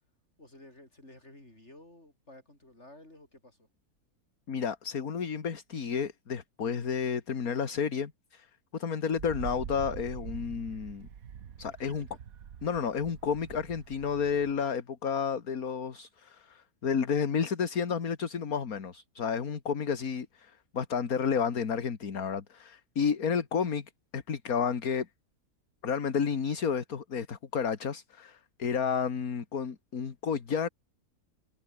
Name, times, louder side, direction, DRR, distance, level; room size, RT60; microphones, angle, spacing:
voice 1, 0.4-3.7 11.7-11.9, left 1 dB, 45° left, 8.2 m, -53 dB
voice 2, 4.5-8.5 8.7-11.1 11.6-12.1 12.6-25.1 25.8-30.7, left 6 dB, 65° left, 2.3 m, -31 dB
Wind, 9.1-14.6, right 8 dB, 65° right, 1.6 m, -44 dB
omnidirectional pair, 1.6 m